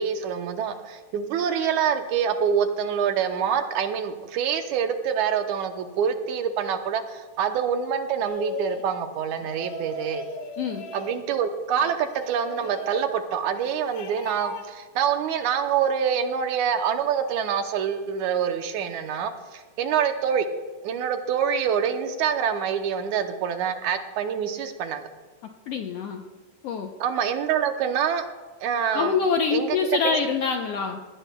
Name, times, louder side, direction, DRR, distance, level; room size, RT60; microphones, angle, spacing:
voice 1, 0.0-10.3 10.9-20.5 20.8-25.1 27.0-28.3 28.6-29.2 29.5-30.2, right 7 dB, 75° right, 6 dB, 2.1 m, -26 dB
sound 1, 8.2-8.9 9.4-11.2 11.8-13.1 13.5-14.7, left 3 dB, 60° left, 2.2 m, -38 dB
voice 2, 25.7-26.2 26.6-26.9 28.9-31.0, left 5 dB, 75° left, 3 dB, 1.4 m, -25 dB
19.0 x 16.5 x 2.3 m, 1.4 s
omnidirectional pair, 3.7 m